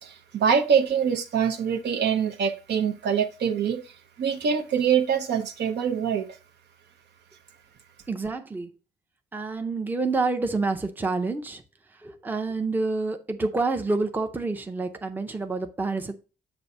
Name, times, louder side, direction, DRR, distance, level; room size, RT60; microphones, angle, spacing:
voice 1, 0.0-6.3, right 7 dB, 70° right, 0.7 m, -24 dB
voice 2, 8.1-8.7 9.3-11.6 12.0-16.2, right 3 dB, 10° right, 0.6 m, -28 dB
6.9 x 2.6 x 5.4 m
cardioid pair, 125°, 18 cm